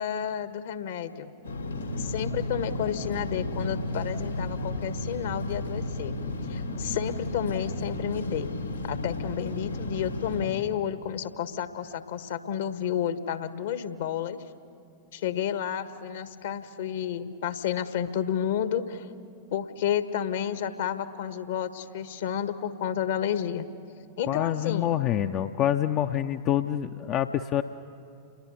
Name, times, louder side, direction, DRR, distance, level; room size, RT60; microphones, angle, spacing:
voice 1, 0.0-1.3 2.0-6.1 6.4-8.5 8.9-14.4 15.1-19.1 19.5-23.7 24.2-24.9, left 9 dB, 60° left, 11 dB, 1.5 m, -31 dB
sound 1, 1.4-10.5, left 2 dB, 80° left, 3.0 m, -33 dB
voice 2, 24.3-27.6, left 11 dB, 35° left, 7 dB, 0.7 m, -26 dB
30.0 x 22.0 x 8.3 m, 2.6 s
figure-of-eight pair, 90°, 0 cm